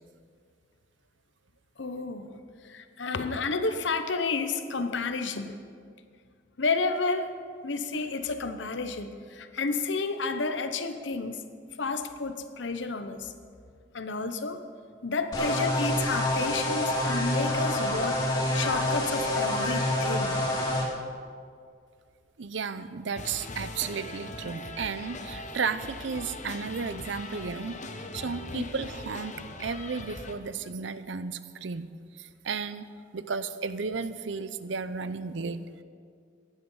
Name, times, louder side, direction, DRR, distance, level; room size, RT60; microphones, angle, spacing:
voice 1, 1.8-2.3 2.6-5.6 6.6-7.3 7.6-11.4 11.8-13.3 13.9-14.6 15.0-18.2 18.5-20.4 28.5-28.6, left 3 dB, 70° left, 9 dB, 0.9 m, -31 dB
sound 1, 15.3-20.8, left 1 dB, 20° left, 2.6 m, -27 dB
voice 2, 22.4-31.9 32.2-35.8, right 5 dB, 75° right, 13 dB, 0.6 m, -34 dB
sound 2, 23.2-30.3, left 2 dB, 40° left, 1.0 m, -41 dB
16.0 x 11.0 x 5.6 m, 2.2 s
head